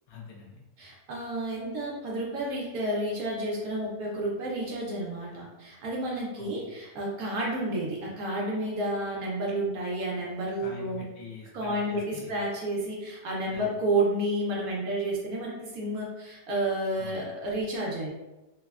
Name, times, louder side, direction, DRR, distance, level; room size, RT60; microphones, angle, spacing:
voice 1, 0.1-0.6 6.4-6.7 10.6-12.3 13.5-13.7 17.0-17.2, left 3 dB, 85° left, -1 dB, 1.1 m, -44 dB
voice 2, 0.8-11.0 11.5-12.0 12.3-18.1, right 1 dB, 80° right, -3 dB, 1.1 m, -31 dB
3.2 x 2.1 x 2.3 m, 1.0 s
omnidirectional pair, 1.5 m